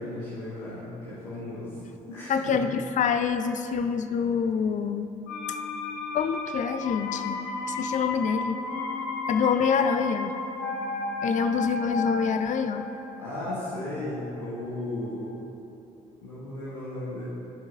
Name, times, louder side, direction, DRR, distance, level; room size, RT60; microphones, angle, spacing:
voice 1, 0.0-2.6 13.2-15.3 16.2-17.2, left 1 dB, 90° left, -10 dB, 1.3 m, -35 dB
voice 2, 2.3-5.1 5.5-5.6 6.1-7.4 7.7-8.6 9.3-10.3 11.2-12.9, left 6 dB, 40° left, 9 dB, 0.5 m, -26 dB
sound 1, 5.3-15.0 15.3-15.4, left 3 dB, 70° left, 0.8 m, -34 dB
12.0 x 5.9 x 2.5 m, 3.0 s
hypercardioid pair, 50°, 19 cm